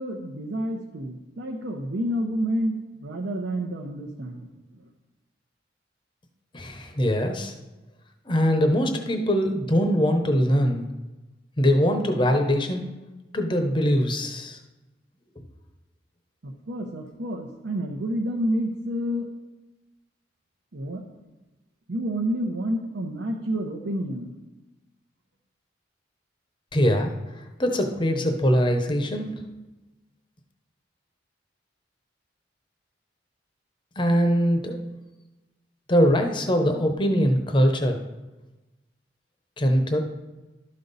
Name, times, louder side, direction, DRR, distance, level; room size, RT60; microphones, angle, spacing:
voice 1, 0.0-4.5 4.8-4.9 16.4-19.3 20.7-21.2 21.9-24.3, equal, 75° right, 0 dB, 0.8 m, -29 dB
voice 2, 6.5-7.5 8.3-10.8 11.6-12.8 13.3-14.6 26.7-27.1 27.6-29.4 34.0-34.8 35.9-38.0 39.6-40.0, equal, 25° left, 5 dB, 0.8 m, -22 dB
12.0 x 5.4 x 4.0 m, 1.1 s
head